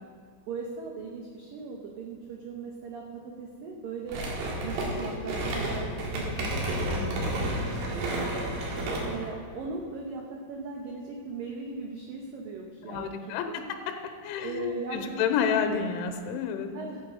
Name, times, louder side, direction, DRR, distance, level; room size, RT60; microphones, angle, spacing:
voice 1, 0.5-4.2 4.6-7.7 7.9-8.5 9.0-13.7 14.4-15.2 16.7-17.0, right 4 dB, 90° right, 0 dB, 1.9 m, -39 dB
sound 1, 4.1-9.3, right 1 dB, 70° right, 4.2 m, -31 dB
voice 2, 6.9-7.5 12.9-13.6 14.2-16.7, left 7 dB, 85° left, 6 dB, 3.1 m, -30 dB
15.5 x 8.7 x 5.2 m, 2.1 s
omnidirectional pair, 5.6 m